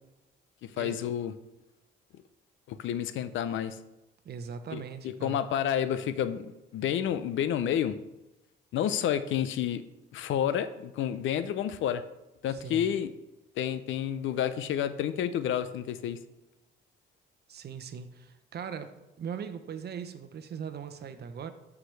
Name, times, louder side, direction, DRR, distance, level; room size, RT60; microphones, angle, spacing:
voice 1, 0.6-1.3 2.7-3.8 4.7-8.0 8.7-9.8 10.1-12.0 12.4-13.1 13.6-16.2, left 9 dB, 75° left, 13 dB, 0.5 m, -30 dB
voice 2, 4.2-5.4 12.5-12.9 17.5-21.5, right 7 dB, 55° right, 9 dB, 0.8 m, -40 dB
12.5 x 4.9 x 3.3 m, 0.99 s
cardioid pair, 90°, 20 cm